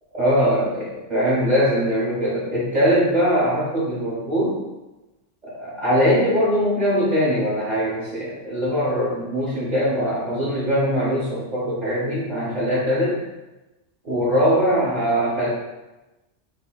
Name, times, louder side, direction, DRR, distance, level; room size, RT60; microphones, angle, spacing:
voice 1, 0.1-4.6 5.5-13.2 14.0-15.5, equal, 40° right, -9 dB, 1.0 m, -21 dB
3.9 x 3.4 x 2.3 m, 1.1 s
omnidirectional pair, 1.2 m